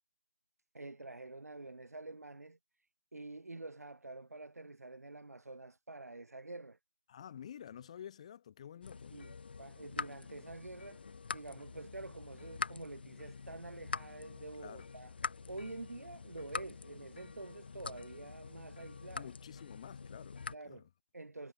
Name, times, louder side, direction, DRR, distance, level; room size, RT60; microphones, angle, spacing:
voice 1, 0.7-2.6 3.1-6.8 9.1-11.1 11.3-15.1 15.5-19.3 20.5-21.5, right 2 dB, 80° right, 1.0 m, -48 dB
voice 2, 7.1-9.2 14.6-14.9 19.1-20.8, left 9 dB, 25° left, 1.6 m, -50 dB
sound 1, 8.8-20.5, left 5 dB, 40° left, 0.4 m, -45 dB
figure-of-eight pair, 160°, 8 cm